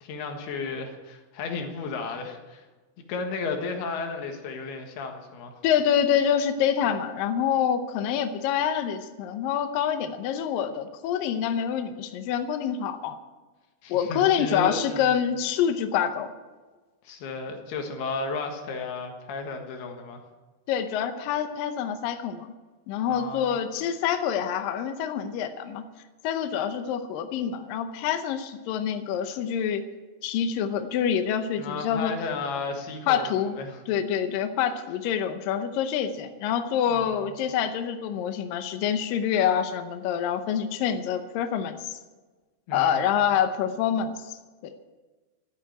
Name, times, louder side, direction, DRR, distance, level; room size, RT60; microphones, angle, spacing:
voice 1, 0.0-2.6 3.1-5.6 13.8-15.2 17.1-20.2 23.1-23.6 31.5-33.3 33.6-33.8 36.9-37.3 42.7-43.1, left 4 dB, 90° left, 4 dB, 3.6 m, -34 dB
voice 2, 5.6-13.2 13.9-16.3 20.7-22.5 22.9-25.8 26.2-29.8 30.2-32.1 33.1-33.6 33.9-42.0 42.7-44.7, left 8 dB, 75° left, 8 dB, 2.4 m, -26 dB
12.5 x 10.0 x 9.0 m, 1.3 s
omnidirectional pair, 4.4 m